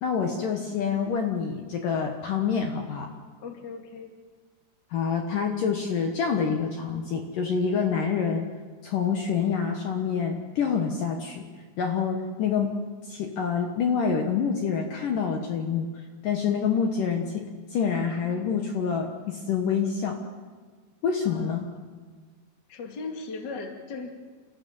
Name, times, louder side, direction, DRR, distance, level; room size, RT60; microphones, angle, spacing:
voice 1, 0.0-3.1 4.9-8.5 8.8-11.4 11.8-12.7 13.1-15.9 16.2-17.4 17.7-20.2 21.0-21.7, left 6 dB, 60° left, 3 dB, 2.6 m, -27 dB
voice 2, 3.4-4.1 21.3-21.7 22.7-24.3, left 4 dB, 30° left, 3 dB, 2.3 m, -38 dB
29.5 x 15.0 x 7.4 m, 1.5 s
omnidirectional pair, 4.9 m